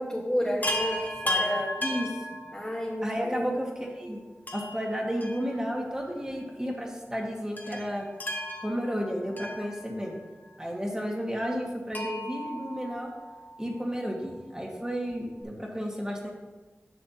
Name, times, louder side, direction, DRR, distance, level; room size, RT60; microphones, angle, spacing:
voice 1, 0.0-1.7 2.5-3.5, equal, 20° left, -6 dB, 1.5 m, -30 dB
Chime, 0.6-3.1 4.5-6.0 6.3-6.4 7.6-10.3 11.9-13.5 15.1-15.2 15.4-15.5, left 1 dB, 35° left, 1.2 m, -35 dB
voice 2, 1.8-2.2 3.0-3.7 4.0-4.2 4.5-8.1 8.6-10.2 10.6-13.1 13.6-16.3, equal, 15° right, -1 dB, 1.8 m, -32 dB
10.5 x 6.7 x 2.9 m, 1.2 s
wide cardioid pair, 50°, 5 cm